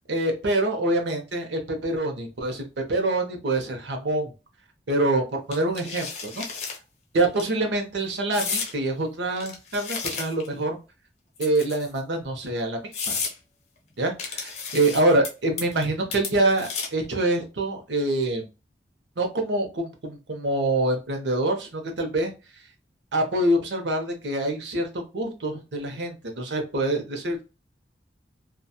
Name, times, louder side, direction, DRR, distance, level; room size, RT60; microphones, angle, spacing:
voice 1, 0.1-4.3 4.9-6.5 7.1-10.8 11.4-12.8 13.1-13.2 14.0-18.5 19.2-22.3 23.1-27.5, right 2 dB, 85° right, 4 dB, 0.8 m, -25 dB
sound 1, 5.5-6.8 7.2-7.4 8.3-8.7 9.4-10.5 11.4-12.0 12.5-12.6 12.9-13.3 14.2-15.3 15.6-17.1, left 5 dB, 40° left, 0.6 m, -32 dB
2.8 x 2.3 x 2.2 m, 0.29 s
head